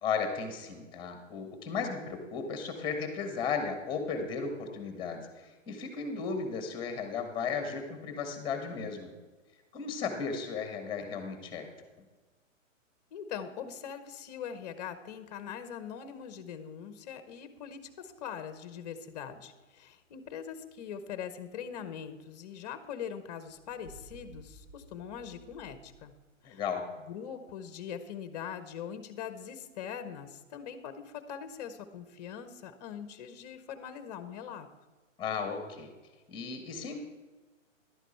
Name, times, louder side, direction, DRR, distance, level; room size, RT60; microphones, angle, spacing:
voice 1, 0.0-9.1 9.7-11.7 26.4-26.8 35.2-35.9 36.3-37.0, left 5 dB, 10° left, 6 dB, 1.3 m, -35 dB
voice 2, 13.1-26.1 26.5-26.6 27.1-34.7, left 8 dB, 30° left, 11 dB, 0.8 m, -42 dB
sound 1, 23.5-26.3, right 1 dB, 50° right, 2.4 m, -54 dB
11.5 x 9.1 x 4.4 m, 1.3 s
hypercardioid pair, 155°, 39 cm